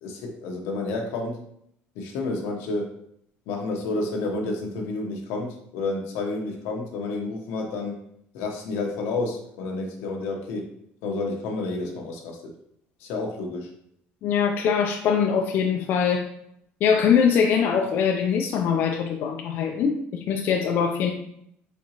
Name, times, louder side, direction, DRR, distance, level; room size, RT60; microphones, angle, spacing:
voice 1, 0.0-1.4 1.9-2.9 3.5-8.0 8.3-10.7 11.0-12.5 13.0-13.7, left 3 dB, 90° left, 1 dB, 1.0 m, -30 dB
voice 2, 14.2-16.3 16.8-21.1, left 7 dB, 55° left, 2 dB, 0.4 m, -22 dB
4.4 x 3.7 x 2.9 m, 0.72 s
cardioid pair, 155°, 4 cm